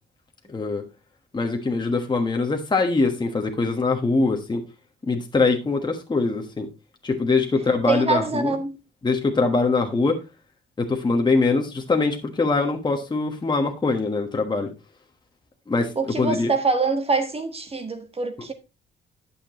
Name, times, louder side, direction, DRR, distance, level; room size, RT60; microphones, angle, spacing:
voice 1, 0.5-0.8 1.3-4.6 5.1-6.7 7.0-8.5 9.0-10.2 10.8-14.7 15.7-16.5, left 3 dB, 20° left, 1.3 m, -23 dB
voice 2, 7.9-8.8 15.9-18.5, right 4 dB, 30° right, 1.5 m, -24 dB
11.0 x 7.0 x 3.0 m
cardioid pair, 125°, 20 cm